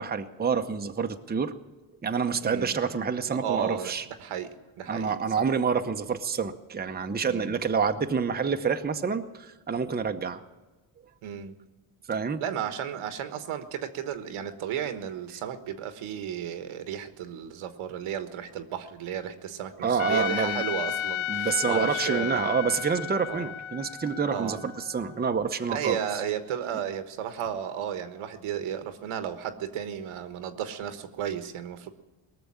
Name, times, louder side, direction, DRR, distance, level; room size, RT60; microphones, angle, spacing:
voice 1, 0.0-1.5 2.0-4.0 4.9-10.4 12.1-12.4 19.8-20.6 21.3-26.0, right 6 dB, 20° right, 6 dB, 0.8 m, -28 dB
voice 2, 2.4-2.8 3.3-3.9 4.2-5.2 7.2-7.6 11.2-11.6 12.4-22.6 23.3-23.5 24.3-24.6 25.7-31.9, right 9 dB, 80° right, 9 dB, 1.4 m, -34 dB
Trumpet, 20.0-25.2, left 11 dB, 70° left, 0.6 m, -33 dB
19.0 x 6.9 x 9.8 m, 1.2 s
cardioid pair, 90°, 49 cm